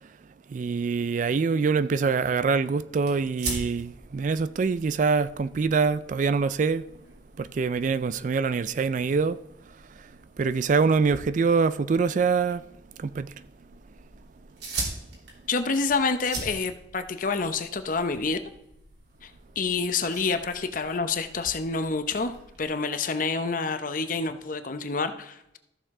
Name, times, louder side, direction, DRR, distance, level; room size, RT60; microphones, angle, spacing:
voice 1, 0.5-6.9 7.4-9.4 10.4-12.6 13.0-13.3, right 5 dB, 45° right, 0.3 m, -24 dB
sound 1, 3.0-22.7, right 3 dB, 70° right, 3.0 m, -42 dB
voice 2, 15.5-18.4 19.2-19.3 19.6-25.6, left 4 dB, 50° left, 0.8 m, -28 dB
14.5 x 6.6 x 3.7 m
head